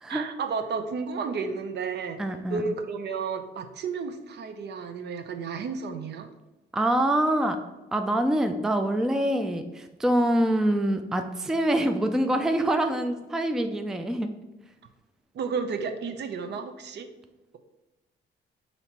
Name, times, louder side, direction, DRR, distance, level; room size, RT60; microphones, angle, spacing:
voice 1, 0.1-2.2 2.5-6.3 15.3-17.1, right 5 dB, 60° right, 8 dB, 0.6 m, -32 dB
voice 2, 2.2-2.6 6.7-7.6 7.9-14.3, right 1 dB, 5° right, 7 dB, 0.3 m, -25 dB
4.2 x 2.9 x 4.3 m, 1.0 s
cardioid pair, 90°, 20 cm